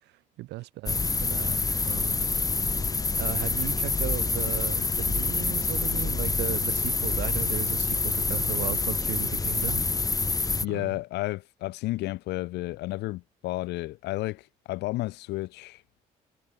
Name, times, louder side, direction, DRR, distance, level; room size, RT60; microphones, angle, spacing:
voice 1, 0.0-2.3 3.2-9.8 10.6-10.9, right 18 dB, 80° right, 1.8 m, -36 dB
sound 1, 0.9-10.7, left 3 dB, 20° left, 1.0 m, -27 dB
voice 2, 10.6-15.8, left 18 dB, 80° left, 1.2 m, -32 dB
supercardioid pair, 65°, 17 cm